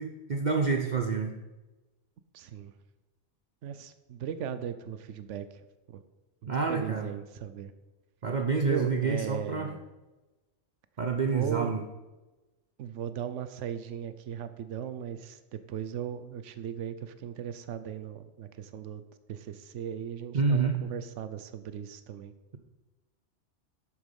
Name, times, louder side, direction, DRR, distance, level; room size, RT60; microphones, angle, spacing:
voice 1, 0.0-1.3 6.5-7.1 8.2-9.7 11.0-11.8 20.3-20.8, right 4 dB, 45° right, 5 dB, 0.8 m, -28 dB
voice 2, 2.3-2.7 3.6-5.6 5.9-6.0 6.4-7.7 8.6-9.8 11.3-11.7 12.8-19.0 19.3-22.3, right 8 dB, 85° right, 11 dB, 1.0 m, -37 dB
11.5 x 8.3 x 5.4 m, 1.1 s
omnidirectional pair, 1.2 m